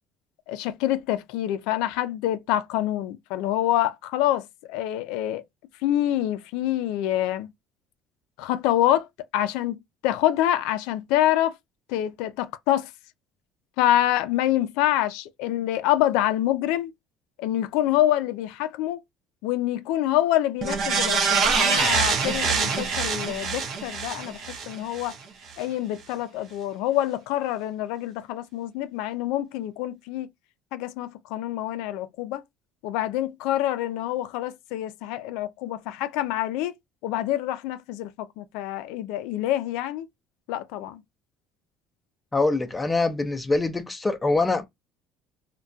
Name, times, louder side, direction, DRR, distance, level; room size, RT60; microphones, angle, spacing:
voice 1, 0.5-5.4 5.8-7.5 8.4-9.1 9.3-9.8 10.0-11.5 11.9-12.9 13.8-16.9 17.4-19.0 19.4-25.1 25.6-30.3 30.7-32.4 32.8-36.8 37.0-40.1 40.5-41.0, left 13 dB, 90° left, 0.3 m, -26 dB
sound 1, 20.6-25.2 25.5-25.6, right 5 dB, 45° right, 0.6 m, -25 dB
voice 2, 42.3-44.6, left 3 dB, 15° left, 0.4 m, -24 dB
2.3 x 2.1 x 2.5 m
cardioid pair, 150°, 0 cm